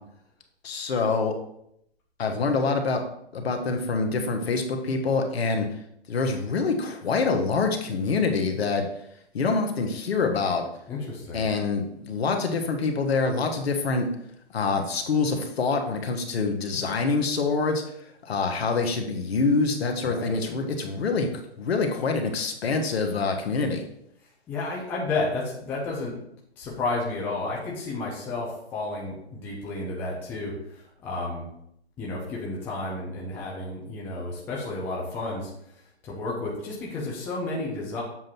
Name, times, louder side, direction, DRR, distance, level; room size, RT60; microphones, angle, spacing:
voice 1, 0.6-1.3 2.2-3.0 3.3-5.7 6.1-8.8 9.3-10.6 11.3-14.0 14.5-17.8 18.2-21.3 21.6-23.8, left 4 dB, 65° left, 4 dB, 1.2 m, -25 dB
voice 2, 10.9-11.5 20.0-20.4 24.5-26.2 26.6-31.5 32.0-35.5 36.0-38.0, left 2 dB, 5° left, -4 dB, 0.5 m, -31 dB
7.5 x 2.6 x 5.9 m, 0.74 s
hypercardioid pair, 145°, 34 cm